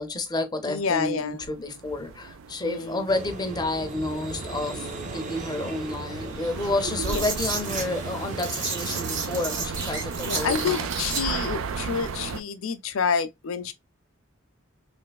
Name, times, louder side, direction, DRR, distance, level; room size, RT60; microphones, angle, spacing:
voice 1, 0.0-10.9, left 2 dB, 20° left, 0.5 m, -30 dB
voice 2, 0.6-1.4 2.6-3.0 7.1-7.2 10.2-13.7, left 6 dB, 80° left, 0.5 m, -28 dB
sound 1, 0.8-12.4, right 5 dB, 80° right, 0.4 m, -35 dB
sound 2, 3.1-11.1, right 2 dB, 35° right, 0.6 m, -39 dB
sound 3, 6.1-11.2, right 4 dB, 60° right, 1.3 m, -33 dB
3.3 x 3.1 x 2.2 m
head